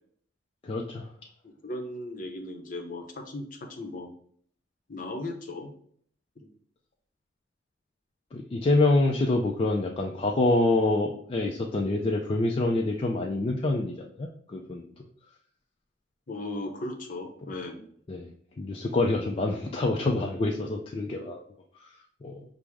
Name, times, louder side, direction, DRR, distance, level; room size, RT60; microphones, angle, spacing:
voice 1, 0.6-1.1 8.3-14.8 17.5-17.6 18.1-21.4 21.8-21.9 22.2-22.4, left 2 dB, 30° left, 0 dB, 0.3 m, -26 dB
voice 2, 1.4-4.1 4.9-5.7 6.4-6.5 16.3-17.8, left 2 dB, 45° left, 3 dB, 0.7 m, -37 dB
6.0 x 2.0 x 3.4 m, 0.62 s
head